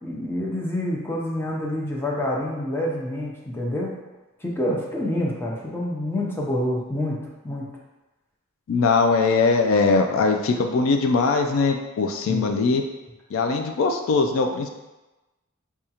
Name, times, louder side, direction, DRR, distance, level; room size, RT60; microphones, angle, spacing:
voice 1, 0.0-3.9 4.4-7.7 12.3-12.4, left 1 dB, 10° left, -3 dB, 0.6 m, -27 dB
voice 2, 8.7-12.8 13.3-14.7, left 4 dB, 75° left, 4 dB, 0.3 m, -21 dB
4.8 x 2.3 x 2.8 m, 1.1 s
head